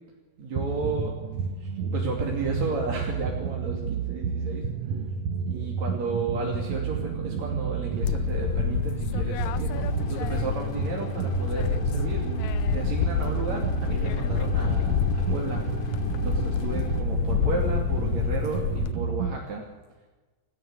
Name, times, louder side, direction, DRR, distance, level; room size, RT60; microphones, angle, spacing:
voice 1, 0.4-1.1 1.6-5.0 5.5-12.3 12.7-15.6 16.1-19.6, right 3 dB, 45° right, -2 dB, 3.7 m, -33 dB
sound 1, 0.6-19.3, right 6 dB, 80° right, 1.5 m, -31 dB
sound 2, 8.0-10.9 11.2-18.9, left 11 dB, 75° left, 2.1 m, -29 dB
sound 3, 9.7-17.0, left 3 dB, 40° left, 2.7 m, -34 dB
29.0 x 12.5 x 7.8 m, 1.2 s
omnidirectional pair, 4.7 m